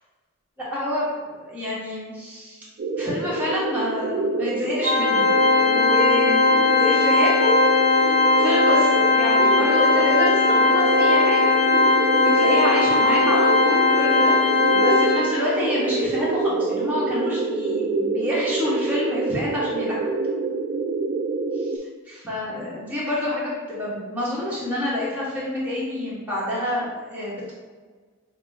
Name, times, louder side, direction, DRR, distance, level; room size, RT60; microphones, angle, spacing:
voice 1, 0.6-2.6 3.0-7.5 7.9-8.0 8.4-11.5 11.9-20.1 21.6-21.7 22.1-27.5, left 1 dB, 5° right, -8 dB, 1.3 m, -28 dB
sound 1, 2.8-21.8, right 3 dB, 45° right, 0.3 m, -27 dB
Organ, 4.8-15.6, left 3 dB, 30° left, 0.6 m, -19 dB
6.0 x 2.1 x 3.5 m, 1.5 s
head